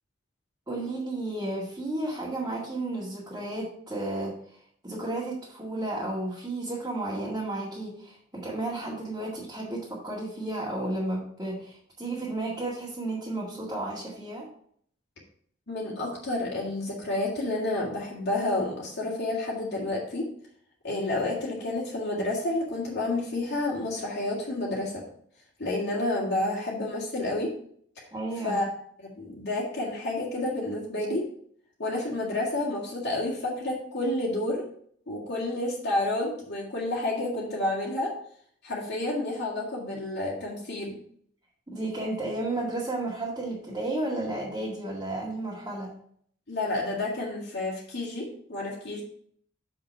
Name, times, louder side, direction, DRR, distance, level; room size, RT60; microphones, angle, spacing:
voice 1, 0.7-14.5 28.1-28.6 41.7-45.9, right 2 dB, 20° right, -7 dB, 2.1 m, -33 dB
voice 2, 15.7-20.3 20.8-24.9 25.6-27.5 28.4-28.7 29.0-31.3 31.8-34.6 35.1-38.1 38.6-41.0 46.5-49.0, left 2 dB, 60° left, -5 dB, 2.1 m, -30 dB
6.7 x 6.6 x 4.5 m, 0.62 s
head